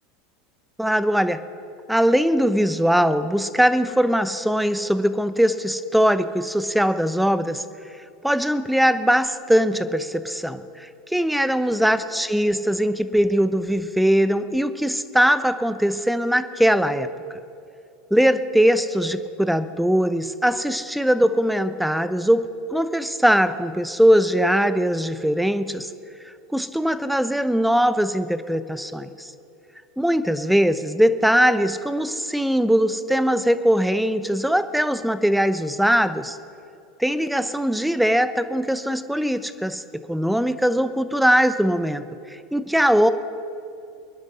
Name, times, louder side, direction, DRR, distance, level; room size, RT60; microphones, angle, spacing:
voice 1, 0.8-1.4 1.9-7.6 8.2-17.1 18.1-25.9 26.5-29.3 30.0-36.4 37.0-42.0 42.3-43.1, equal, ahead, 12 dB, 0.9 m, -21 dB
26.5 x 11.5 x 4.3 m, 2.6 s
hypercardioid pair, 85°, 0 cm